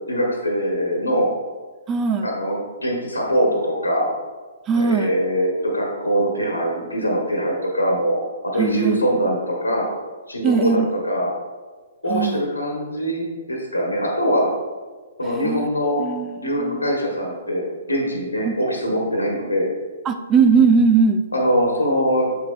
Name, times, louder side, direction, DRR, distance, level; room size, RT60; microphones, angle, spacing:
voice 1, 0.1-1.3 2.2-4.1 4.7-9.9 10.3-11.3 12.0-14.5 15.2-16.0 16.4-19.7 21.3-22.4, equal, 90° left, -1 dB, 1.4 m, -22 dB
voice 2, 1.9-2.3 4.7-5.1 8.6-9.0 10.4-10.9 12.1-12.4 15.3-15.7 16.0-16.9 18.4-18.5 20.0-21.2, right 5 dB, 20° right, 6 dB, 0.4 m, -19 dB
6.7 x 5.9 x 2.5 m, 1.3 s
figure-of-eight pair, 125°, 0 cm